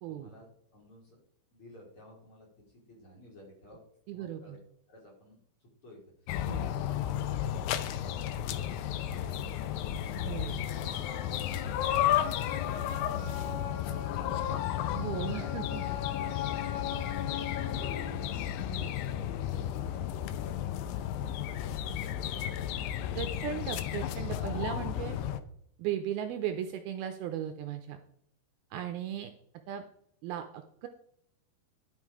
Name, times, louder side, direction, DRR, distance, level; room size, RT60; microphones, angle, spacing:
voice 1, 0.1-1.2 1.5-3.8 4.1-4.6 4.9-6.5 6.8-14.7 15.1-15.5 16.2-18.4 18.8-21.5 21.8-23.6 29.1-29.2, left 1 dB, 35° left, -2 dB, 3.1 m, -55 dB
voice 2, 4.1-4.6 6.4-6.7 10.2-10.6 14.9-15.8 18.6-18.9 23.1-25.2 25.8-28.0 28.7-29.3 29.7-29.8 30.2-30.9, right 10 dB, 80° right, 7 dB, 2.3 m, -37 dB
Morning Spring Ambience - Early April, 6.3-25.4, left 11 dB, 80° left, 2.1 m, -33 dB
sound 1, 10.7-18.9, left 10 dB, 65° left, 2.8 m, -40 dB
12.0 x 6.3 x 4.8 m, 0.70 s
omnidirectional pair, 4.9 m